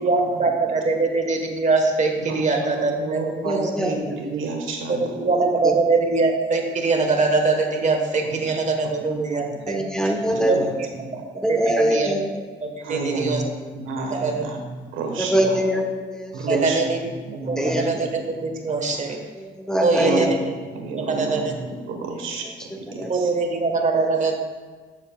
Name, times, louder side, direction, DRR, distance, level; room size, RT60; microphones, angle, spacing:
voice 1, 0.0-3.6 4.9-9.8 10.5-10.9 11.5-12.1 12.6-13.4 14.2-14.4 16.5-17.0 17.5-19.2 19.8-20.3 21.1-21.5 23.1-24.3, right 3 dB, 35° right, 3 dB, 1.3 m, -22 dB
voice 2, 2.2-5.2 8.2-8.6 9.0-9.6 10.2-11.2 12.8-15.6 16.3-18.0 18.3-19.0 20.0-23.3, right 3 dB, 85° right, 2 dB, 1.4 m, -31 dB
voice 3, 3.4-3.9 5.2-5.3 5.6-5.7 9.7-10.7 11.3-12.2 15.2-16.6 17.6-17.9 19.3-20.3 22.9-23.1, equal, 5° left, 1 dB, 1.1 m, -23 dB
12.0 x 7.2 x 2.3 m, 1.5 s
cardioid pair, 90°, 20 cm